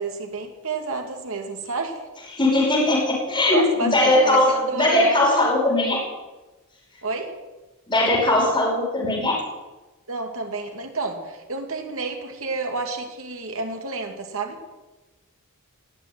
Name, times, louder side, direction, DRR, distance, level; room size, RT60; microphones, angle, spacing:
voice 1, 0.0-2.0 3.5-5.5 7.0-7.3 10.1-14.6, right 3 dB, 70° right, 3 dB, 2.6 m, -29 dB
voice 2, 2.3-6.0 7.9-9.4, left 2 dB, 20° left, -3 dB, 5.4 m, -20 dB
19.5 x 7.4 x 9.5 m, 1.1 s
head